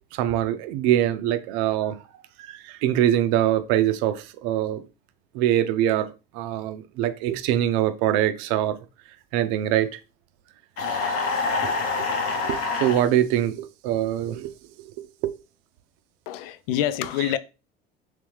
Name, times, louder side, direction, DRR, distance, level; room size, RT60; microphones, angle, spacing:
voice 1, 0.1-2.0 2.4-4.8 5.3-8.8 9.3-10.0 11.6-11.7 12.4-14.5 15.0-15.3, right 12 dB, 60° right, 0.5 m, -24 dB
sound 1, 10.8-13.0, left 4 dB, 50° left, 1.1 m, -26 dB
voice 2, 16.3-17.4, left 12 dB, 70° left, 0.4 m, -26 dB
3.3 x 3.3 x 3.0 m
hypercardioid pair, 70°, 30 cm